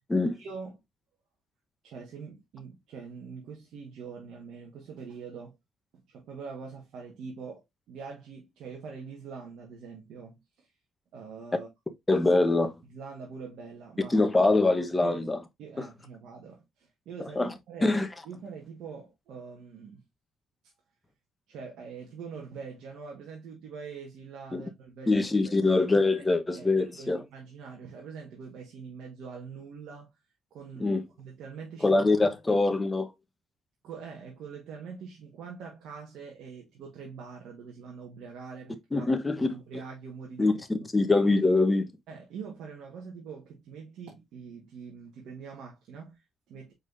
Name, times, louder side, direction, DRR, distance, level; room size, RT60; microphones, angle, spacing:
voice 1, 0.3-0.8 1.8-5.6 5.9-10.7 11.1-11.7 12.8-14.2 15.0-15.3 15.6-18.0 18.2-20.0 21.5-25.7 26.2-26.3 26.5-30.1 30.5-30.9 31.2-32.2 33.8-39.1 39.4-40.5 40.8-40.9 42.1-46.7, right 5 dB, 80° right, 1.3 m, -44 dB
voice 2, 12.1-12.7 14.1-15.4 17.4-17.5 17.8-18.1 24.5-24.6 25.1-27.2 30.8-31.0 31.8-33.1 38.9-39.5 40.4-40.5 40.9-41.9, left 2 dB, 20° left, 1.0 m, -23 dB
5.0 x 4.1 x 2.5 m
cardioid pair, 90°, 0 cm